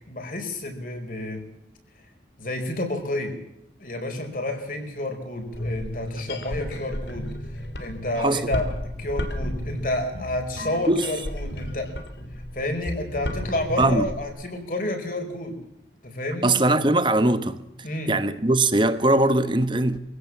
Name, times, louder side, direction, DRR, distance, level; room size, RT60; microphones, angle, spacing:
voice 1, 0.1-1.5 2.4-3.4 3.8-8.7 9.0-11.9 12.5-15.6 16.0-16.6 17.8-18.1, left 1 dB, 50° left, 4.8 m, -30 dB
sound 1, 5.4-14.2, left 1 dB, 80° left, 3.1 m, -33 dB
voice 2, 16.4-17.6 18.1-20.0, right 2 dB, 25° right, 1.3 m, -20 dB
23.5 x 16.5 x 7.3 m
head